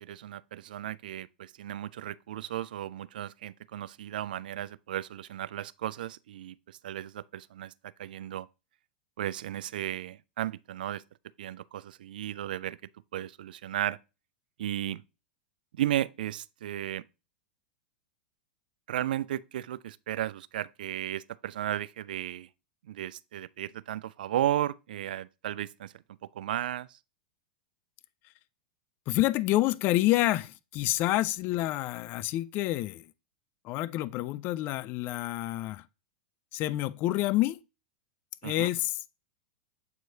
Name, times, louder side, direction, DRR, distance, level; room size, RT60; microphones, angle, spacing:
voice 1, 0.0-8.5 9.2-11.0 11.4-12.8 13.1-14.0 14.6-15.0 15.7-17.0 18.9-22.5 22.9-25.9 26.3-27.0 38.4-38.7, right 12 dB, 75° right, 0.3 m, -34 dB
voice 2, 29.1-33.1 33.6-35.9 36.5-37.6 38.4-39.0, left 16 dB, 45° left, 0.4 m, -28 dB
7.7 x 4.5 x 2.7 m
hypercardioid pair, 105°, 5 cm